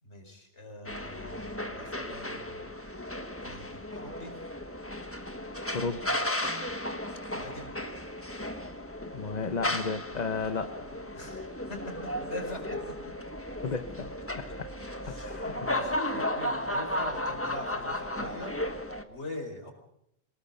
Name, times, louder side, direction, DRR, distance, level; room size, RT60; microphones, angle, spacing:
voice 1, 0.0-2.6 3.4-4.3 7.3-7.7 11.1-12.6 15.0-19.7, left 1 dB, 80° left, 4 dB, 5.1 m, -43 dB
sound 1, 0.9-19.0, left 1 dB, 10° left, 1.4 m, -35 dB
voice 2, 5.7-6.2 9.1-10.9 13.6-14.1 14.4-14.7 15.2-15.7, left 4 dB, 40° left, 8 dB, 1.1 m, -33 dB
24.5 x 21.0 x 5.5 m, 0.77 s
omnidirectional pair, 1.2 m